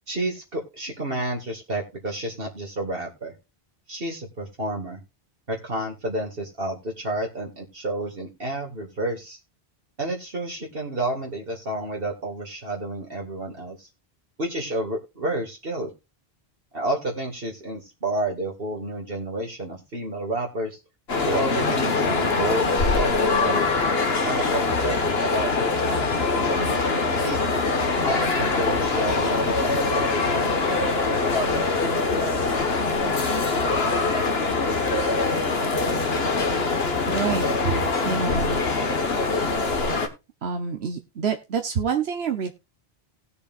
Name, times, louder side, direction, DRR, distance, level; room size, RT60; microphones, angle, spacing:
voice 1, 0.1-3.3 3.9-5.0 5.5-9.4 10.0-13.9 14.4-15.9 16.7-20.8 21.3-23.6 24.2-27.4 28.1-30.5 31.0-32.2, right 1 dB, 65° right, 0 dB, 2.4 m, -30 dB
sound 1, 21.1-40.1, left 3 dB, 75° left, 1.8 m, -23 dB
voice 2, 37.1-38.6 40.4-42.5, right 6 dB, 85° right, 5 dB, 1.3 m, -27 dB
19.0 x 6.9 x 2.5 m, 0.26 s
omnidirectional pair, 1.0 m